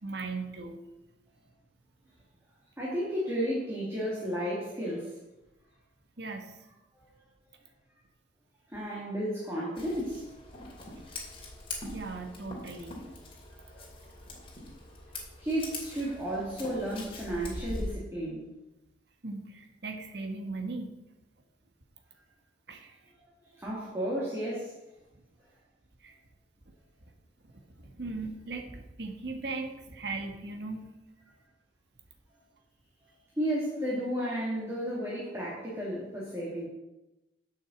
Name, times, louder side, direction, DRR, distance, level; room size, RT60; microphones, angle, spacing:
voice 1, 0.0-0.8 6.2-6.6 11.8-13.0 19.2-21.0 22.7-23.0 26.0-26.2 27.8-30.8, right 3 dB, 60° right, 4 dB, 1.5 m, -38 dB
voice 2, 2.8-5.1 8.7-10.2 13.5-13.8 15.4-18.5 23.6-24.7 33.4-36.7, equal, 15° right, -6 dB, 2.5 m, -33 dB
Scissors, 9.8-17.9, left 2 dB, 30° left, 2.6 m, -42 dB
8.4 x 6.6 x 7.8 m, 0.99 s
head